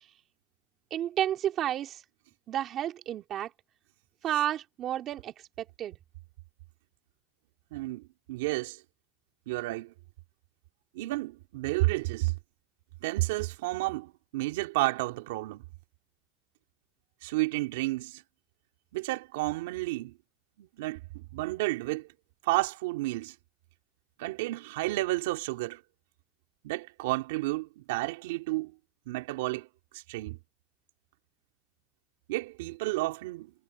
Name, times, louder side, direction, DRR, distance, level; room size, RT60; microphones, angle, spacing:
voice 1, 0.9-2.0 2.5-3.5 4.2-6.0, right 11 dB, 45° right, 2.6 m, -31 dB
voice 2, 7.7-8.8 9.5-9.9 10.9-12.3 13.0-15.6 17.2-18.2 18.9-20.2 20.6-22.1 22.4-23.3 24.2-25.8 26.6-28.7 29.1-29.7 29.9-30.4 32.3-33.5, right 20 dB, 90° right, 2.9 m, -31 dB
supercardioid pair, 125°, 0 cm